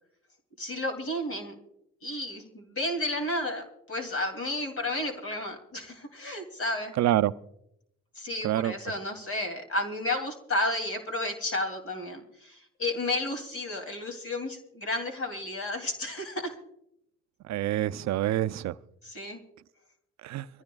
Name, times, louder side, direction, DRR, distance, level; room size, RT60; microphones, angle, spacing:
voice 1, 0.6-1.5 2.0-6.9 8.2-16.5 19.0-19.4, left 1 dB, 50° left, 2.8 m, -32 dB
voice 2, 7.0-7.3 8.4-8.7 17.5-18.8 20.2-20.5, right 13 dB, 65° right, 0.5 m, -26 dB
24.5 x 14.5 x 2.3 m
cardioid pair, 90°, 30 cm